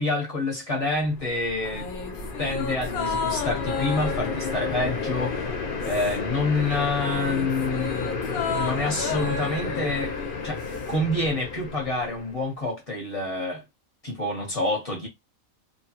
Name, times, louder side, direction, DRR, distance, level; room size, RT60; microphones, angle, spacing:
voice 1, 0.0-1.9 2.4-5.5 5.8-10.1 10.4-13.6 14.0-15.1, left 2 dB, 30° left, 1.0 m, -27 dB
sound 1, 1.0-12.4, left 4 dB, 50° left, 0.7 m, -32 dB
sound 2, 1.6-6.4 6.7-11.0 11.3-11.4, left 5 dB, 80° left, 1.1 m, -33 dB
2.9 x 2.3 x 2.8 m
omnidirectional pair, 1.4 m